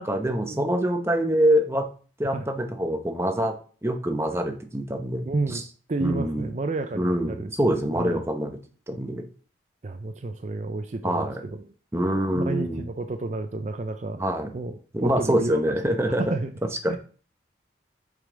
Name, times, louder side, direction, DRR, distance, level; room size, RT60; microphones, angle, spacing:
voice 1, 0.0-1.9 2.2-3.6 3.8-5.6 6.0-6.5 6.9-8.6 8.9-9.2 11.0-11.4 11.9-12.8 14.2-14.5 14.9-16.2 16.8-16.9, equal, 15° right, 5 dB, 0.8 m, -25 dB
voice 2, 5.2-5.6 5.9-8.2 9.8-11.6 12.3-14.2 14.5-15.6 15.9-16.5 16.9-17.0, right 3 dB, 40° right, 8 dB, 0.5 m, -31 dB
8.0 x 5.1 x 3.7 m, 0.41 s
head